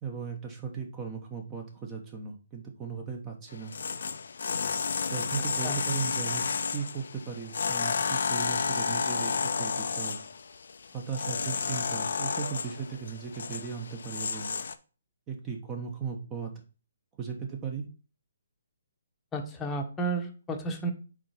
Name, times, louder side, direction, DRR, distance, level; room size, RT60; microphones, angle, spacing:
voice 1, 0.0-3.7 5.1-6.5 6.7-10.2 10.9-14.5 15.3-16.5 17.2-17.8, right 6 dB, 20° right, 3 dB, 1.0 m, -37 dB
sound 1, 3.5-14.8, left 5 dB, 70° left, 0.5 m, -31 dB
voice 2, 19.3-20.9, right 2 dB, 15° left, 2 dB, 1.0 m, -32 dB
5.0 x 4.0 x 5.6 m, 0.35 s
hypercardioid pair, 145°, 0 cm